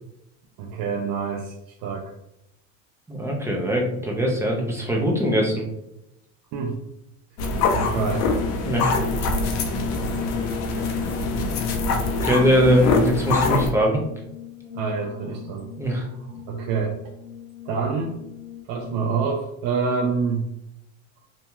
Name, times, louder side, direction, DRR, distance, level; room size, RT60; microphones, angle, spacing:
voice 1, 0.6-1.5 1.8-2.1 6.5-6.8 7.7-8.3 14.7-15.7 16.1-16.9 17.7-18.2 18.7-20.4, right 5 dB, 55° right, -1 dB, 0.6 m, -27 dB
voice 2, 3.1-5.6 8.7-9.0 12.2-14.0 15.8-16.1, equal, 5° right, -1 dB, 0.5 m, -21 dB
sound 1, 7.4-13.7, left 3 dB, 45° left, 0.5 m, -24 dB
Brass instrument, 13.1-19.5, left 11 dB, 60° left, 1.4 m, -42 dB
2.8 x 2.7 x 2.2 m, 0.83 s
supercardioid pair, 115°, 41 cm